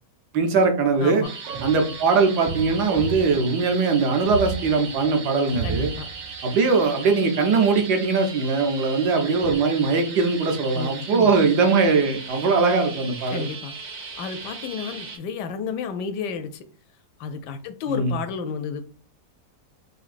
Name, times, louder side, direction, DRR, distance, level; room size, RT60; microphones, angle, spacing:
voice 1, 0.3-1.2 1.6-5.9 6.4-13.5 17.9-18.1, right 4 dB, 70° right, 4 dB, 1.3 m, -21 dB
sound 1, 1.2-15.2, right 4 dB, 50° right, 0.9 m, -38 dB
sound 2, 1.2-8.1 9.4-9.6, right 6 dB, 90° right, 1.3 m, -35 dB
voice 2, 5.6-6.1 10.7-11.3 13.3-13.7 14.2-16.6 17.2-18.8, left 6 dB, 80° left, 9 dB, 1.1 m, -31 dB
5.1 x 2.7 x 2.5 m, 0.39 s
omnidirectional pair, 1.9 m